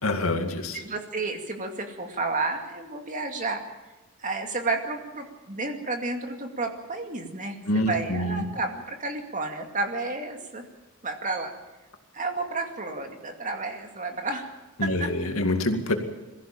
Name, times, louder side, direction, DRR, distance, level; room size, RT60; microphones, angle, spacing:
voice 1, 0.0-0.8 7.7-8.5 14.8-16.0, left 1 dB, 80° left, 6 dB, 2.2 m, -26 dB
voice 2, 0.7-3.6 4.2-10.6 11.0-11.5 12.1-14.5, right 3 dB, 40° right, 4 dB, 2.4 m, -31 dB
22.0 x 15.0 x 8.8 m, 1.1 s
head